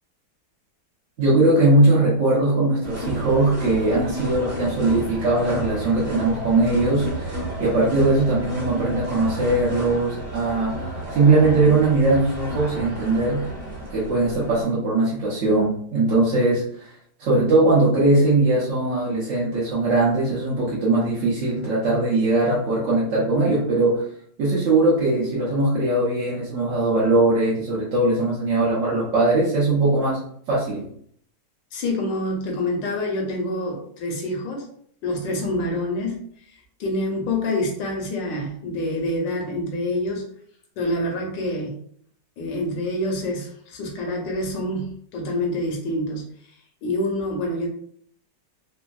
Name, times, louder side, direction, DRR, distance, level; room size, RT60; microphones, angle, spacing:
voice 1, 1.2-10.8 11.1-13.5 13.9-16.9 17.2-24.0 24.4-30.2 30.5-30.8, right 2 dB, 60° right, -7 dB, 0.8 m, -20 dB
sound 1, 2.8-14.6, right 1 dB, 40° right, 1.4 m, -32 dB
voice 2, 31.7-34.7 35.0-36.2 36.5-40.2 40.8-41.8 42.4-46.2 46.8-47.7, left 1 dB, 80° left, 0 dB, 1.3 m, -26 dB
3.4 x 2.0 x 2.3 m, 0.63 s
omnidirectional pair, 2.0 m